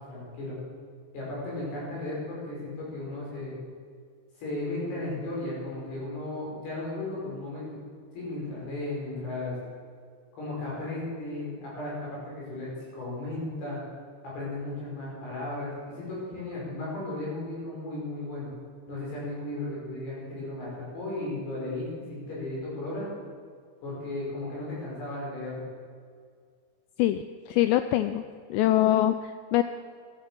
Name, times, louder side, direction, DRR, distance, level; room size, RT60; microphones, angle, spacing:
voice 1, 0.1-0.6 1.1-3.5 4.4-7.8 8.1-9.6 10.3-13.8 14.2-18.5 18.9-23.0 23.8-25.7, left 2 dB, 60° left, -5 dB, 7.7 m, -35 dB
voice 2, 27.0-28.2 28.5-29.6, left 13 dB, 85° left, 10 dB, 2.5 m, -24 dB
13.0 x 12.5 x 7.7 m, 2.1 s
omnidirectional pair, 5.4 m